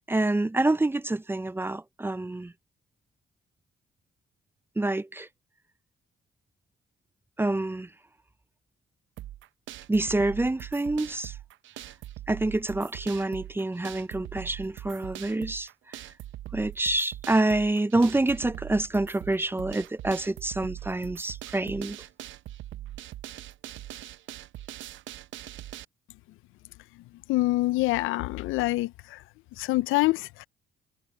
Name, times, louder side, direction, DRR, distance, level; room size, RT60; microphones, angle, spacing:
voice 1, 0.1-2.5 4.8-5.3 7.4-7.9 9.9-11.3 12.3-16.0 16.5-22.0, right 2 dB, 10° right, 0.5 m, -27 dB
sound 1, 9.2-25.8, right 13 dB, 75° right, 0.6 m, -42 dB
voice 2, 27.3-29.2 29.6-30.5, left 19 dB, 90° left, 0.4 m, -26 dB
cardioid pair, 90°, 20 cm